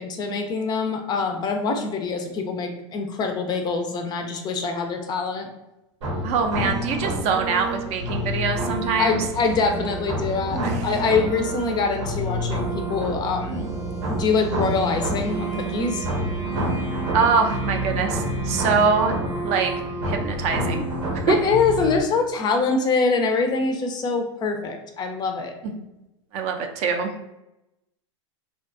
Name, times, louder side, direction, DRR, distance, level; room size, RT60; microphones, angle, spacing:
voice 1, 0.0-5.5 9.0-13.7 14.1-16.0 21.3-25.5, left 4 dB, 30° left, 5 dB, 0.3 m, -24 dB
sound 1, 6.0-22.0, right 1 dB, 75° right, 0.8 m, -28 dB
voice 2, 6.2-9.2 10.5-10.9 16.9-19.1 19.4-19.7 20.0-20.9 21.1-21.3 25.6-25.7 26.3-27.1, right 5 dB, 45° right, 4 dB, 0.4 m, -24 dB
2.6 x 2.2 x 2.4 m, 0.92 s
hypercardioid pair, 105°, 15 cm